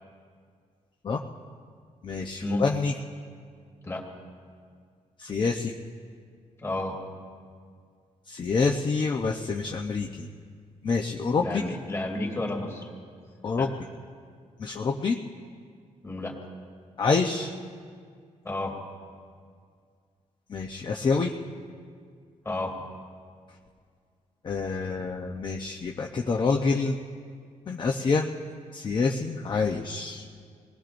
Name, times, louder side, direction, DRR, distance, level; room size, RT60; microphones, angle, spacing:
voice 1, 2.0-2.9 5.2-5.7 8.3-10.3 10.8-11.4 13.4-13.7 14.6-15.2 17.0-17.5 20.5-21.3 24.4-27.0 27.7-28.3 28.7-30.2, left 4 dB, 35° left, 1 dB, 0.8 m, -27 dB
voice 2, 6.6-7.0 11.4-12.9 13.6-13.7 16.0-16.4 18.4-18.8 22.4-22.8, left 2 dB, 20° left, 0 dB, 2.7 m, -31 dB
27.0 x 20.0 x 2.6 m, 2.1 s
wide cardioid pair, 160°, 13 cm